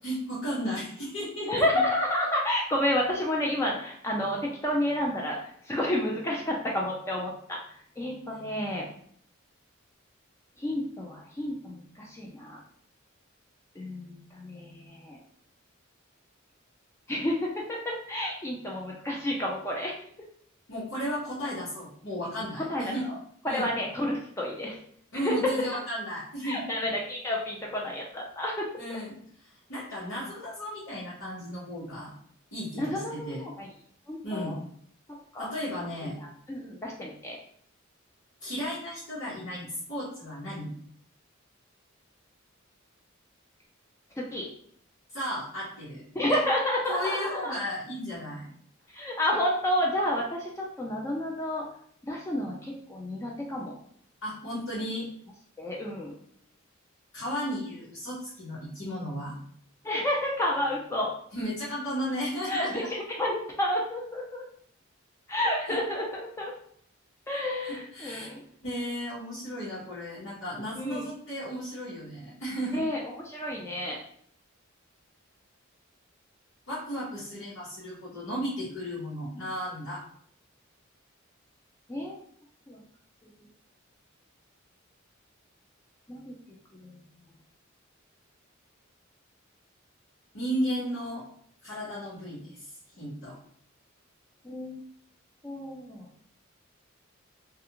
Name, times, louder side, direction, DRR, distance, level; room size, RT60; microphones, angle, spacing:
voice 1, 0.0-1.8 20.7-23.1 23.4-23.7 25.1-26.6 28.8-29.2 29.7-32.1 32.5-33.4 34.2-34.5 35.4-36.2 38.4-40.7 45.1-46.4 46.9-48.5 54.2-55.1 57.1-59.3 61.3-62.9 65.7-65.8 67.6-68.3 68.6-72.8 76.7-80.0 90.3-91.2 91.6-92.7 93.0-93.4, equal, 80° left, -12 dB, 1.1 m, -34 dB
voice 2, 1.5-8.9 10.6-12.6 13.8-15.2 17.1-17.4 17.7-20.0 22.7-23.1 23.4-24.8 25.1-25.3 26.4-29.0 32.8-33.7 34.1-34.6 35.3-35.5 36.2-37.4 44.2-44.5 46.1-47.5 48.9-51.6 52.0-53.8 55.6-56.1 59.8-61.1 62.5-64.4 65.3-66.5 67.3-68.4 70.8-71.0 72.7-74.0 81.9-82.2 82.7-82.8 83.2-83.3 86.1-86.3 86.8-86.9 94.4-94.8 95.4-96.1, left 1 dB, 15° left, -2 dB, 0.4 m, -30 dB
2.4 x 2.4 x 2.8 m, 0.63 s
head